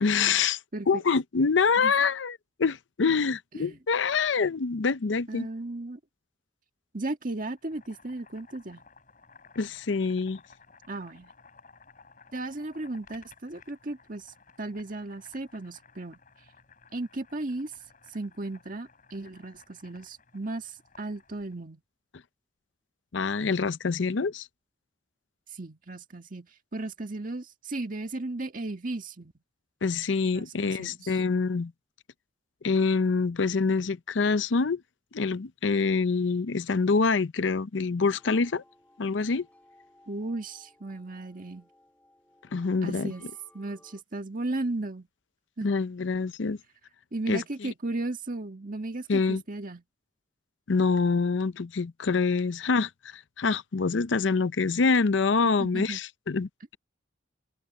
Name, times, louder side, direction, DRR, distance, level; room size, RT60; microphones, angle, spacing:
voice 1, 0.0-0.6 0.9-5.5 9.6-10.4 23.1-24.5 29.8-31.7 32.6-34.8 35.1-38.6 39.0-39.5 42.5-43.1 45.6-46.6 47.3-47.4 49.1-49.4 50.7-56.8, left 4 dB, 85° left, 0.6 m, -26 dB
voice 2, 5.3-6.0 6.9-8.8 10.9-11.3 12.3-16.2 16.9-17.7 18.1-21.8 25.5-29.3 30.3-31.1 40.1-41.7 42.8-43.3 43.5-45.1 45.6-45.7 47.1-49.8 55.6-56.0, right 2 dB, 45° right, 1.7 m, -35 dB
Boiling, 7.5-21.6, left 5 dB, 45° left, 5.3 m, -57 dB
sound 1, 38.0-44.0, left 1 dB, 10° left, 6.6 m, -60 dB
head